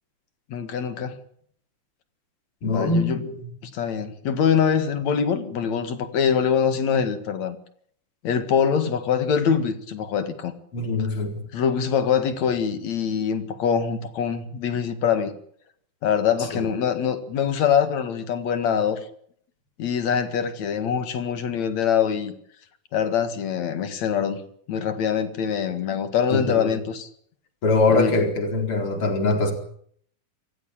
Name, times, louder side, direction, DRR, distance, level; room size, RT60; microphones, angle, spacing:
voice 1, 0.5-1.2 2.6-3.2 3.6-7.6 8.2-10.5 11.5-15.3 16.0-19.0 19.8-22.3 22.9-24.4 24.7-27.1 27.9-28.1, left 7 dB, 60° left, 3.1 m, -24 dB
voice 2, 2.6-3.5 10.7-11.5 16.4-16.7 26.3-26.8 27.6-29.5, left 3 dB, 40° left, 5.0 m, -23 dB
25.5 x 15.0 x 8.9 m
omnidirectional pair, 3.7 m